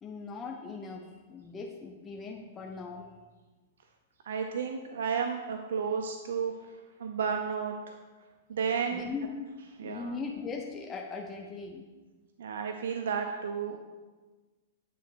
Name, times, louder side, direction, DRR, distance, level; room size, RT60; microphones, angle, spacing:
voice 1, 0.0-3.1 8.9-9.3 9.8-11.9, left 4 dB, 15° left, 2 dB, 0.4 m, -39 dB
voice 2, 4.3-6.5 7.0-8.0 8.5-9.0 9.8-10.1 12.4-13.8, right 6 dB, 80° right, 4 dB, 0.5 m, -32 dB
8.4 x 3.3 x 4.6 m, 1.3 s
hypercardioid pair, 155°, 0 cm